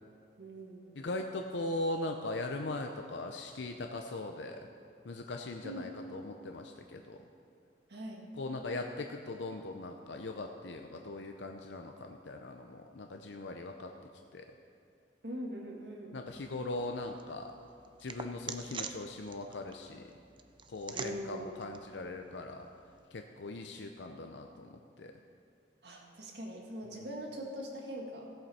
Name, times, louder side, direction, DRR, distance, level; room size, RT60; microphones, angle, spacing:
voice 1, 0.4-1.1 5.6-5.9 7.9-8.2 15.2-16.2 20.9-21.6 25.8-28.4, right 1 dB, 65° right, 0 dB, 1.8 m, -42 dB
voice 2, 1.0-4.6 5.0-7.2 8.4-13.9 14.3-14.5 16.1-17.5 18.0-20.0 20.7-22.7 23.1-25.1, left 2 dB, 90° left, 4 dB, 0.6 m, -40 dB
sound 1, 16.3-23.1, right 6 dB, 30° right, 0.5 m, -47 dB
16.5 x 7.8 x 4.3 m, 2.4 s
head